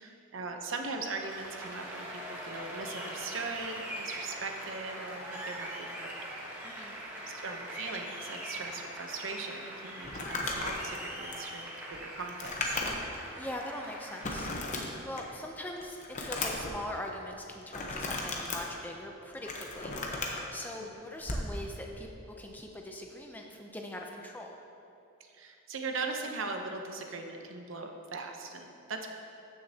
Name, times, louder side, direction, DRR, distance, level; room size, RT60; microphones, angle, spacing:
voice 1, 0.0-6.1 6.8-12.8 20.8-20.9 25.2-29.1, right 3 dB, 60° right, 3 dB, 0.7 m, -40 dB
Applause, 1.0-14.6, equal, 10° right, 1.1 m, -42 dB
voice 2, 6.6-7.0 13.3-14.5 15.0-24.6, left 1 dB, 10° left, 1 dB, 0.5 m, -42 dB
Crumpling crinkling, 10.0-13.2 13.6-13.7 14.2-15.4 15.8-16.7 17.7-18.6 19.2-20.4 21.2-21.5, left 2 dB, 35° left, 0.8 m, -35 dB
13.5 x 6.5 x 2.8 m, 2.8 s
head